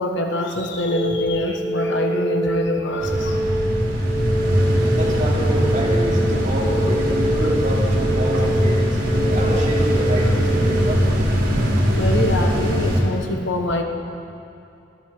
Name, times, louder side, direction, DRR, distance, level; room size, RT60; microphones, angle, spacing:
voice 1, 0.0-3.4 4.5-4.6 7.4-7.5 8.3-8.4 9.4-9.6 11.9-13.8, left 1 dB, 65° left, 3 dB, 1.2 m, -24 dB
sound 1, 0.9-10.9, right 1 dB, 45° left, 1.6 m, -26 dB
sound 2, 3.0-13.0, equal, 75° right, 3.9 m, -20 dB
voice 2, 4.9-11.0, equal, 40° right, -5 dB, 3.2 m, -27 dB
22.0 x 13.5 x 3.9 m, 2.7 s
head